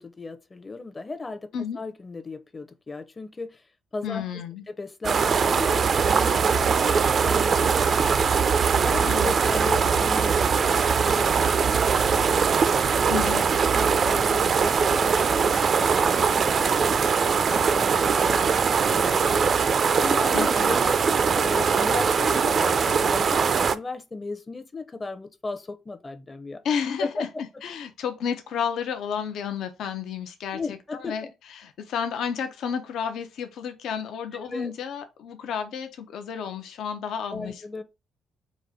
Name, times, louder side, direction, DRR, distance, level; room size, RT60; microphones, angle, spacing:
voice 1, 0.0-1.5 1.8-3.6 3.9-4.2 4.7-8.4 8.8-12.5 13.0-19.6 20.0-21.0 21.3-26.6 27.0-27.4 30.5-31.3 34.5-34.7 37.3-37.8, left 3 dB, 25° left, 0.6 m, -36 dB
voice 2, 4.0-4.6 9.0-9.3 9.7-9.9 13.1-13.4 20.3-20.7 26.6-27.3 27.6-37.8, left 7 dB, 75° left, 0.6 m, -31 dB
sound 1, 5.0-23.8, right 6 dB, 50° right, 0.4 m, -21 dB
4.2 x 2.4 x 4.8 m
cardioid pair, 90°, 0 cm